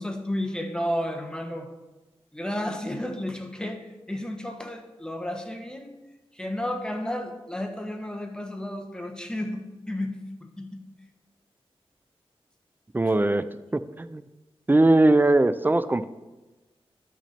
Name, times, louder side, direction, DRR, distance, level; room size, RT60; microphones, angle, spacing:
voice 1, 0.0-1.7 2.3-5.9 6.3-10.8, left 1 dB, 10° left, 4 dB, 1.2 m, -32 dB
voice 2, 12.9-13.5 13.7-14.2 14.7-16.0, right 2 dB, 20° right, 12 dB, 0.5 m, -20 dB
12.5 x 6.0 x 4.3 m, 1.1 s
cardioid pair, 60°, 10 cm